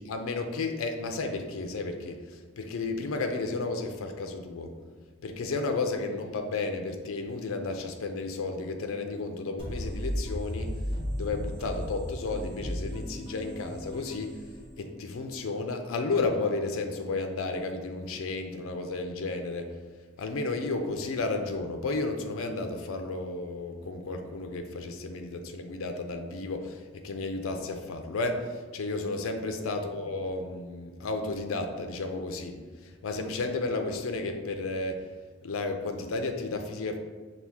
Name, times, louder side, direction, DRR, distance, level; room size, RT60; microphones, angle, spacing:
voice 1, 0.0-4.7 5.2-10.7 11.1-14.4 14.8-19.8 20.2-35.1 35.4-37.0, left 3 dB, 90° left, 5 dB, 0.5 m, -33 dB
sound 1, 9.6-15.2, equal, 25° right, 1.0 m, -35 dB
5.8 x 2.4 x 3.4 m, 1.4 s
head